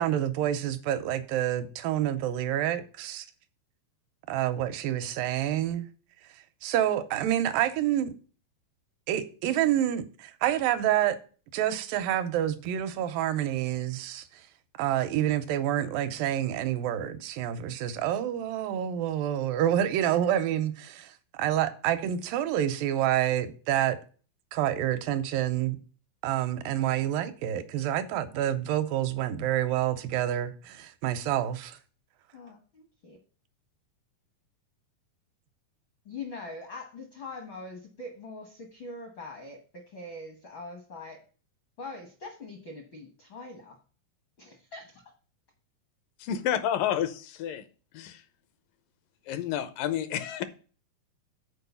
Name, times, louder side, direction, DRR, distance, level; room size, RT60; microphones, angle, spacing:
voice 1, 0.0-3.3 4.3-5.9 6.6-8.1 9.1-11.2 11.5-14.4 14.8-24.0 24.5-25.8 26.2-31.8, right 11 dB, 85° right, 2.4 m, -28 dB
voice 2, 32.3-33.2 36.0-41.2 41.8-43.8 44.4-45.0, left 3 dB, 65° left, 1.2 m, -43 dB
voice 3, 46.3-47.1 47.4-47.7 47.9-48.2 49.3-50.4, left 10 dB, 80° left, 2.3 m, -29 dB
6.6 x 4.6 x 6.8 m
omnidirectional pair, 4.0 m